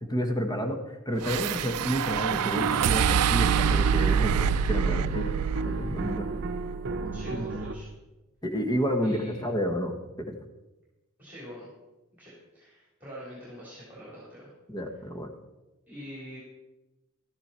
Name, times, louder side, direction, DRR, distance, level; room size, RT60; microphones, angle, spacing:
voice 1, 0.0-6.2 7.3-7.5 8.4-9.9 10.2-10.3 14.7-15.3, equal, 15° left, 4 dB, 1.1 m, -30 dB
sound 1, 1.2-7.6, right 7 dB, 90° right, 0.4 m, -27 dB
sound 2, 2.3-7.7, right 3 dB, 50° right, 0.8 m, -33 dB
voice 2, 7.1-7.9 9.0-9.4 11.2-11.7 12.2-14.5 15.9-16.4, equal, 10° right, -7 dB, 3.9 m, -44 dB
13.0 x 10.5 x 4.4 m, 1.0 s
head